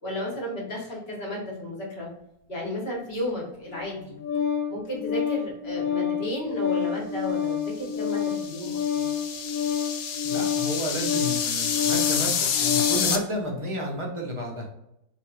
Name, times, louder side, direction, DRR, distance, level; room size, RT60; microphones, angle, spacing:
voice 1, 0.0-2.1 2.5-4.2 4.7-9.1, left 1 dB, 40° left, -2 dB, 1.5 m, -33 dB
Organ, 3.7-13.1, left 7 dB, 65° left, 1.4 m, -28 dB
sound 1, 8.0-13.2, left 7 dB, 90° left, 0.5 m, -28 dB
voice 2, 10.2-14.7, equal, 25° right, -1 dB, 0.9 m, -31 dB
4.5 x 2.8 x 2.5 m, 0.81 s
omnidirectional pair, 1.7 m